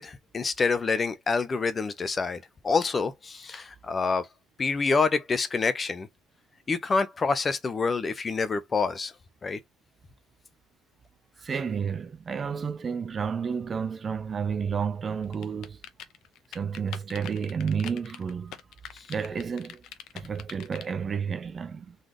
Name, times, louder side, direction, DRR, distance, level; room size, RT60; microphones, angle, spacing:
voice 1, 0.0-4.3 4.6-6.1 6.7-9.1 9.4-9.6 18.9-19.0, left 4 dB, 20° left, 0.6 m, -27 dB
voice 2, 11.4-15.8 16.5-18.6 19.1-19.8 20.1-22.0, right 6 dB, 25° right, 0.4 m, -31 dB
sound 1, 15.3-20.9, left 10 dB, 55° left, 0.7 m, -42 dB
4.0 x 3.3 x 3.7 m
cardioid pair, 170°, 0 cm